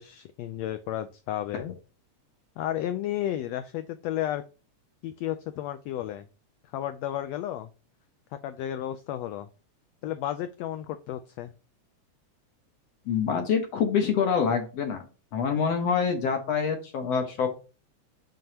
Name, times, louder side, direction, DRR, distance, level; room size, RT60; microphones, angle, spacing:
voice 1, 0.0-1.8 2.6-4.4 5.0-6.3 6.7-7.7 8.4-9.5 10.0-11.5, left 12 dB, 90° left, 10 dB, 1.4 m, -32 dB
voice 2, 13.1-15.1 15.3-17.5, left 6 dB, 65° left, 4 dB, 1.9 m, -26 dB
7.7 x 5.4 x 2.8 m, 0.33 s
omnidirectional pair, 3.5 m